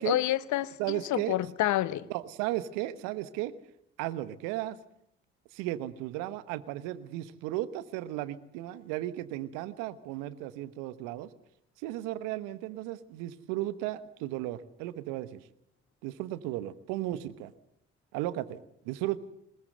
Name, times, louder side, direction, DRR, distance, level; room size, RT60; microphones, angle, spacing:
voice 1, 0.0-2.1, left 14 dB, 60° left, 1.0 m, -29 dB
voice 2, 0.8-1.3 2.1-3.5 4.0-4.8 5.5-11.3 11.8-15.4 16.0-17.5 18.1-18.6 18.8-19.2, right 15 dB, 75° right, 1.1 m, -35 dB
21.5 x 20.5 x 7.8 m
hypercardioid pair, 50°, 33 cm